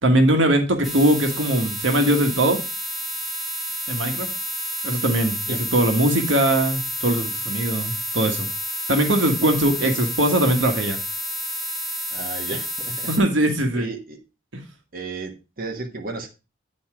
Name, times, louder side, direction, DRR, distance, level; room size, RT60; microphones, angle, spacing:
voice 1, 0.0-2.6 3.9-4.3 4.8-8.5 8.9-11.0 13.1-13.9 14.5-14.6, right 1 dB, 75° right, 5 dB, 1.5 m, -20 dB
sound 1, 0.8-13.2, equal, ahead, 1.6 m, -30 dB
voice 2, 12.1-13.1 13.5-14.2 14.9-16.3, right 3 dB, 50° right, 2 dB, 1.3 m, -34 dB
9.7 x 4.4 x 4.8 m, 0.30 s
head